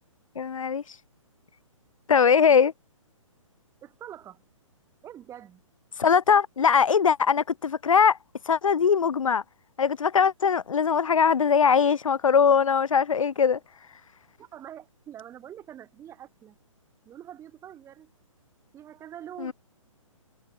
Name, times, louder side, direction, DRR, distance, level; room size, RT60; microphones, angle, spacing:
voice 1, 0.3-0.8 2.1-2.7 6.0-8.2 8.5-9.4 9.8-13.6 19.4-19.5, left 6 dB, 75° left, 1.2 m, -21 dB
voice 2, 3.8-4.4 5.0-5.6 14.4-16.6 17.0-18.1 18.7-19.5, right 10 dB, 15° right, 2.6 m, -44 dB
hypercardioid pair, 140°, 17 cm